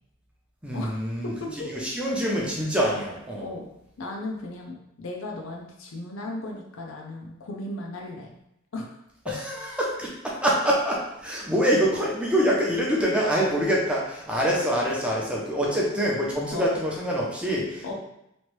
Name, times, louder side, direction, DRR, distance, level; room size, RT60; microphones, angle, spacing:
voice 1, 0.6-1.3 1.7-3.5 9.3-17.9, equal, 5° right, -4 dB, 0.6 m, -25 dB
voice 2, 1.2-1.7 3.4-3.7 4.0-8.3 8.7-9.0 9.3-9.4 16.5-16.7 17.8-17.9, left 2 dB, 75° left, 0 dB, 0.6 m, -35 dB
3.0 x 2.6 x 3.1 m, 0.82 s
head